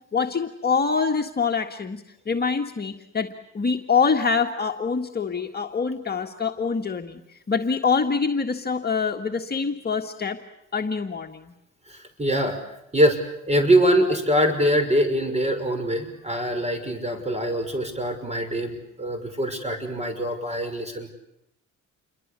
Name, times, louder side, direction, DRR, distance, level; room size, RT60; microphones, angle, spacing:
voice 1, 0.0-3.3 3.5-7.2 7.5-10.4 10.7-11.4, left 5 dB, 30° left, 3 dB, 1.8 m, -25 dB
voice 2, 11.9-12.6 12.9-13.2 13.5-21.1, equal, 20° right, 8 dB, 6.1 m, -23 dB
28.5 x 22.5 x 8.4 m, 0.80 s
cardioid pair, 90°, 30 cm